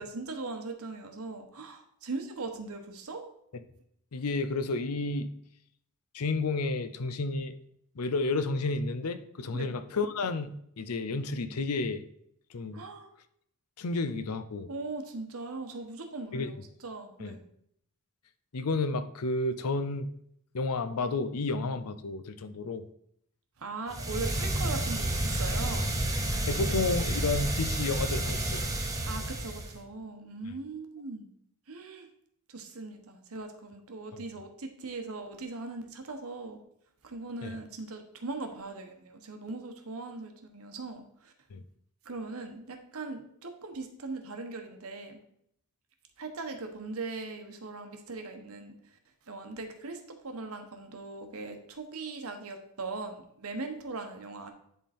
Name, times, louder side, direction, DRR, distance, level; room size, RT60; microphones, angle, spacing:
voice 1, 0.0-3.3 9.5-9.7 12.7-13.1 14.7-17.4 23.6-26.0 29.1-31.3 31.7-32.1 32.5-36.6 37.0-41.3 42.0-45.2 46.2-48.8 49.3-54.5, right 3 dB, 70° right, 5 dB, 1.1 m, -40 dB
voice 2, 4.1-5.3 6.1-7.5 8.0-12.1 12.5-12.8 13.8-14.7 16.3-16.5 17.2-17.3 18.5-20.1 20.5-22.8 26.5-28.7 30.5-30.6 34.1-34.2 37.4-37.6 41.5-41.6, left 3 dB, 85° left, 11 dB, 0.6 m, -31 dB
sound 1, 23.9-29.8, right 1 dB, 15° right, 0.9 m, -30 dB
10.5 x 3.7 x 4.3 m, 0.70 s
head